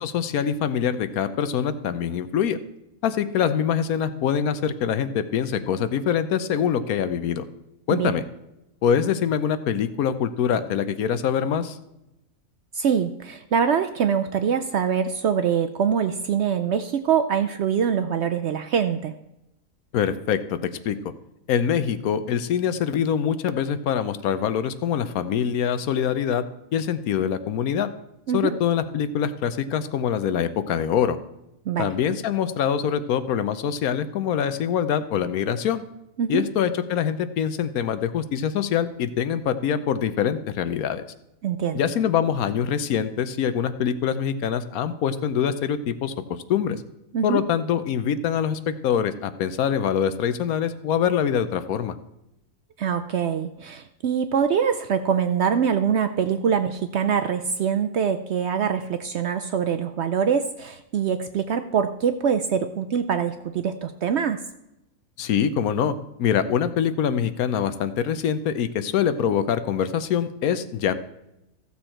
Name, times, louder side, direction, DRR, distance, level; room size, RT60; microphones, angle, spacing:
voice 1, 0.0-2.6 3.0-7.5 7.9-8.2 8.8-11.8 19.9-20.6 20.8-21.0 21.5-26.4 26.7-27.9 28.3-31.2 31.8-35.8 36.3-41.0 41.7-46.8 47.2-52.0 65.2-70.9, left 8 dB, 75° left, 12 dB, 1.1 m, -24 dB
voice 2, 12.7-19.1 28.3-28.6 31.7-31.9 36.2-36.5 41.4-41.8 47.1-47.4 52.8-64.4, right 7 dB, 65° right, 8 dB, 0.7 m, -24 dB
14.5 x 7.1 x 4.4 m, 0.89 s
omnidirectional pair, 1.6 m